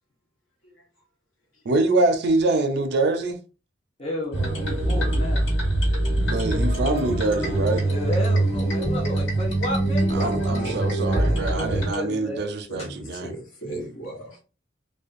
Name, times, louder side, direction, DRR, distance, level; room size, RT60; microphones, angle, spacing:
voice 1, 1.7-3.4 6.2-7.9 10.1-13.3, right 2 dB, 55° right, 0.4 m, -24 dB
voice 2, 4.0-5.5 7.9-12.5 12.8-12.9, left 1 dB, 30° left, 0.7 m, -32 dB
sound 1, 4.3-12.0, right 1 dB, 70° left, 1.5 m, -23 dB
voice 3, 12.7-14.4, right 1 dB, 85° left, 1.0 m, -36 dB
2.5 x 2.2 x 2.4 m
head